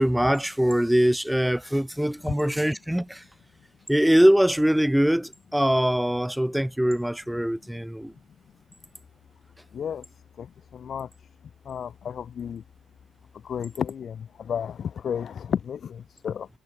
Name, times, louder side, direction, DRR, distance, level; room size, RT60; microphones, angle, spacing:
voice 1, 0.0-3.2 3.9-8.1, equal, 5° right, 1.1 m, -22 dB
voice 2, 9.7-10.0 10.4-10.5 10.7-11.1 11.7-12.6 13.4-16.5, left 8 dB, 45° left, 0.6 m, -32 dB
figure-of-eight pair, 45°, 0 cm